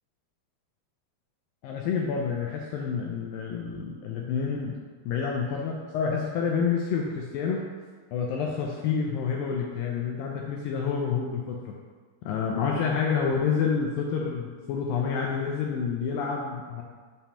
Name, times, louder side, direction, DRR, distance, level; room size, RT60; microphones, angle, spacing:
voice 1, 1.6-4.7 5.1-7.6 8.1-11.8 12.2-16.8, left 6 dB, 85° left, -1 dB, 2.0 m, -28 dB
7.1 x 2.9 x 5.5 m, 1.5 s
omnidirectional pair, 4.6 m